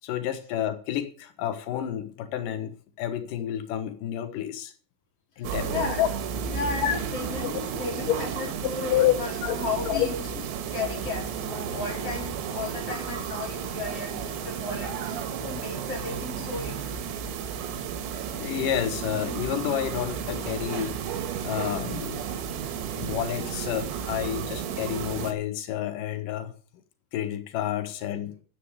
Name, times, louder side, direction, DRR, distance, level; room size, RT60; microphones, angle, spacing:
voice 1, 0.0-4.7 5.4-6.1 6.8-7.0 7.4-7.5 8.9-9.1 9.4-9.6 9.9-10.1 18.3-21.2 21.4-22.2 23.0-26.5 27.1-28.3, left 11 dB, 85° left, 1.9 m, -29 dB
voice 2, 5.4-6.0 6.5-7.5 7.8-10.2 10.7-17.1, left 4 dB, 30° left, 5.0 m, -35 dB
sound 1, 5.4-25.3, right 7 dB, 85° right, 4.6 m, -33 dB
13.5 x 8.2 x 8.2 m
omnidirectional pair, 5.9 m